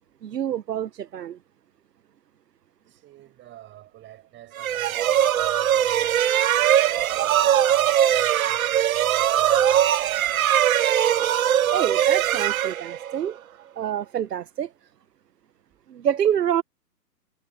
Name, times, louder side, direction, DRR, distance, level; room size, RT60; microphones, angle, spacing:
voice 1, 0.2-1.4 11.7-13.4 13.8-14.7 15.9-16.6, right 9 dB, 70° right, 1.1 m, -26 dB
voice 2, 2.8-9.9, right 14 dB, 20° right, 7.2 m, -48 dB
sound 1, 4.6-13.3, right 10 dB, 55° right, 1.8 m, -21 dB
hypercardioid pair, 130°, 50 cm